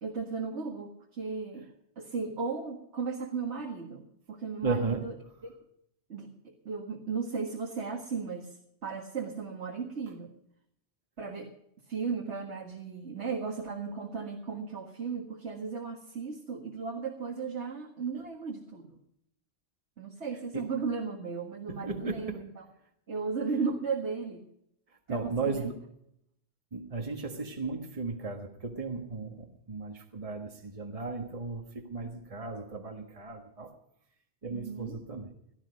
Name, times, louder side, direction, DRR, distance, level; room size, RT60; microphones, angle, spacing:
voice 1, 0.0-1.7 2.0-5.1 5.4-5.5 6.1-10.3 11.2-11.5 11.9-19.0 20.0-22.6 23.1-24.4 25.1-25.7 34.5-35.0, right 5 dB, 85° right, 1 dB, 2.1 m, -36 dB
voice 2, 4.6-5.0 20.5-20.7 21.7-22.4 25.1-25.8 26.7-33.7 34.4-35.3, right 4 dB, 30° right, 4 dB, 1.6 m, -35 dB
17.5 x 12.0 x 5.1 m, 0.74 s
omnidirectional pair, 1.1 m